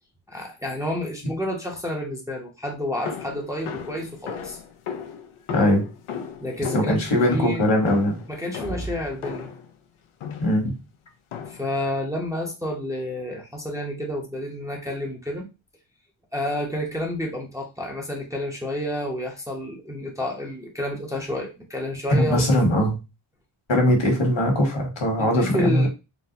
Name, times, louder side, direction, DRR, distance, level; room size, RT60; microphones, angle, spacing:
voice 1, 0.3-4.6 6.4-7.6 8.3-9.5 11.5-15.5 16.3-22.7 25.2-25.9, left 1 dB, 5° right, -1 dB, 0.6 m, -30 dB
sound 1, 3.1-9.7 10.2-10.7 11.3-11.8, left 7 dB, 80° left, 0.6 m, -36 dB
voice 2, 6.7-8.2 10.4-10.7 22.1-22.9 23.7-25.9, equal, 60° left, 1 dB, 1.3 m, -20 dB
4.0 x 2.1 x 2.7 m, 0.27 s
wide cardioid pair, 105°, 49 cm